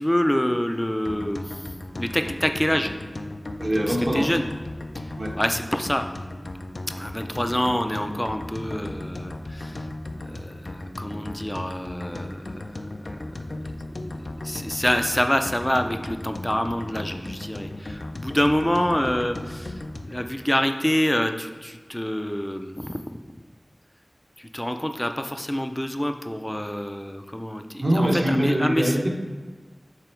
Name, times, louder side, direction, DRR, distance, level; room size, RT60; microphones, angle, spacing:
voice 1, 0.0-1.7 2.0-2.9 3.9-4.4 5.0-6.1 7.0-9.9 10.2-12.8 14.4-23.0 24.4-29.0, equal, 15° left, 7 dB, 0.4 m, -26 dB
sound 1, 1.1-20.2, left 1 dB, 70° left, 0.4 m, -36 dB
voice 2, 3.6-4.2 5.2-5.3 27.8-29.1, equal, 55° right, -1 dB, 1.1 m, -23 dB
6.9 x 3.4 x 4.5 m, 1.4 s
wide cardioid pair, 50°, 0 cm